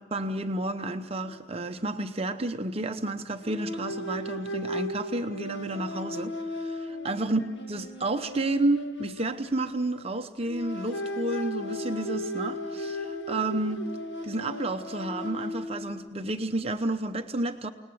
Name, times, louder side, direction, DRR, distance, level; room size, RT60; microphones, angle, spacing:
voice 1, 0.1-13.9 14.2-17.7, right 2 dB, 30° right, 6 dB, 0.8 m, -31 dB
sound 1, 1.2-1.4 1.7-1.9 3.4-10.0 10.4-16.1, left 1 dB, 70° left, 1.7 m, -36 dB
29.5 x 19.5 x 7.0 m, 1.3 s
head